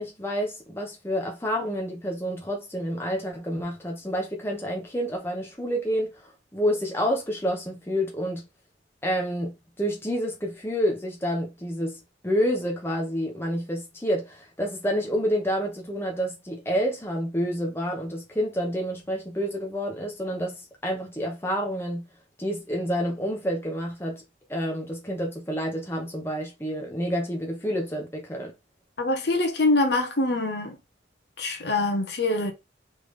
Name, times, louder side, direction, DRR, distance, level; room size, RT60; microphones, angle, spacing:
voice 1, 0.0-8.4 9.0-22.0 22.4-24.2 24.5-28.5, equal, 15° left, 1.1 m, -29 dB
voice 2, 29.0-30.8 31.4-32.5, left 2 dB, 60° left, 0.9 m, -24 dB
3.7 x 3.5 x 3.2 m
head